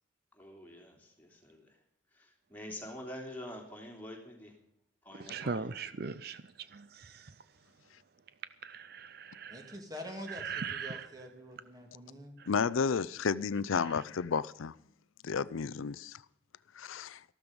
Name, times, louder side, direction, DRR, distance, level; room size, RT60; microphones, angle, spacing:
voice 1, 0.3-1.8 2.1-4.6 5.0-5.7, left 1 dB, 10° left, 3.1 m, -46 dB
voice 2, 5.3-6.4 6.7-7.2 8.6-9.7 10.4-11.0, right 5 dB, 50° right, 0.5 m, -39 dB
voice 3, 9.5-12.4, equal, 20° right, 2.4 m, -46 dB
voice 4, 12.5-14.7 15.2-16.2 16.7-17.2, left 5 dB, 90° left, 0.5 m, -32 dB
13.5 x 13.0 x 5.2 m
head